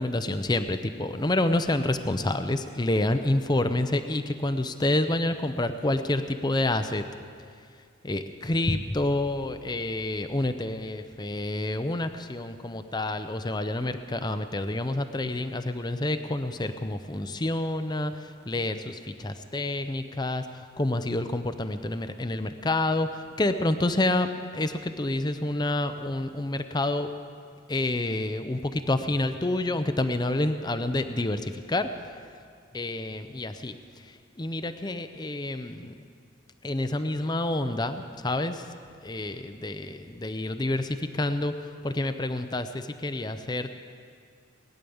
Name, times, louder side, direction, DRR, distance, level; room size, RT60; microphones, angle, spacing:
voice 1, 0.0-7.0 8.0-24.3 24.5-27.1 27.7-31.9 32.7-33.7 34.4-35.9 36.6-38.6 39.0-41.5 41.8-43.8, left 2 dB, 20° left, 9 dB, 0.6 m, -28 dB
19.5 x 10.0 x 7.0 m, 2.2 s
head